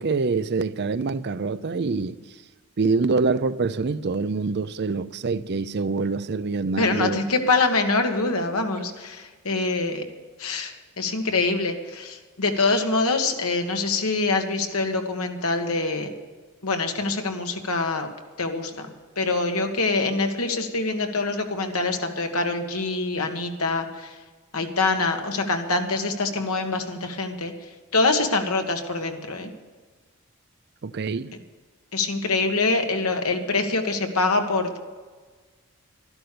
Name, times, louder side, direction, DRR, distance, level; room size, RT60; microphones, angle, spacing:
voice 1, 0.0-2.2 2.8-7.2 30.8-31.3, right 4 dB, 50° right, 0.5 m, -25 dB
voice 2, 6.8-10.0 10.4-16.1 16.6-18.1 18.4-18.9 19.2-24.2 24.5-27.5 27.9-29.5 31.9-34.8, left 3 dB, 75° left, 1.7 m, -25 dB
12.5 x 12.0 x 6.9 m
head